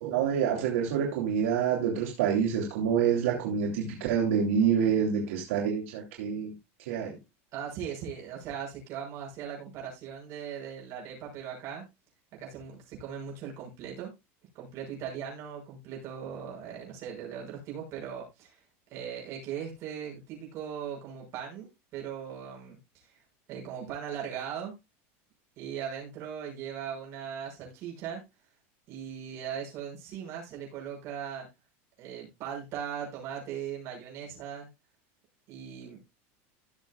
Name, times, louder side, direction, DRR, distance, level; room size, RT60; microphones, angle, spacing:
voice 1, 0.0-6.5 6.9-7.2, right 7 dB, 80° right, 0 dB, 2.8 m, -27 dB
voice 2, 7.5-11.8 12.3-14.1 14.5-18.6 18.9-23.2 23.5-24.7 25.6-28.2 28.9-31.5 32.0-34.7 35.5-36.0, right 8 dB, 40° right, -2 dB, 6.1 m, -39 dB
17.0 x 6.8 x 2.3 m, 0.22 s
supercardioid pair, 155°, 7 cm